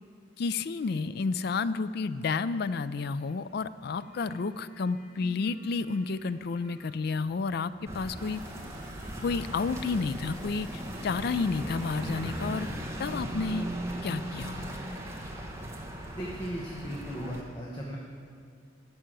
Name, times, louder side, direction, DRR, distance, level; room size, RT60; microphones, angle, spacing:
voice 1, 0.4-8.4 9.2-12.7 13.0-13.7 14.0-14.8, left 4 dB, 55° left, 15 dB, 0.4 m, -31 dB
sound 1, 3.1-3.4 3.7-10.3, right 1 dB, 85° left, 2.8 m, -53 dB
sound 2, 7.9-17.4, right 1 dB, 15° right, 1.1 m, -38 dB
sound 3, 8.2-13.9, right 4 dB, 45° right, 2.5 m, -58 dB
voice 2, 16.1-18.0, equal, 25° left, -2 dB, 1.0 m, -37 dB
12.5 x 5.7 x 8.9 m, 2.3 s
head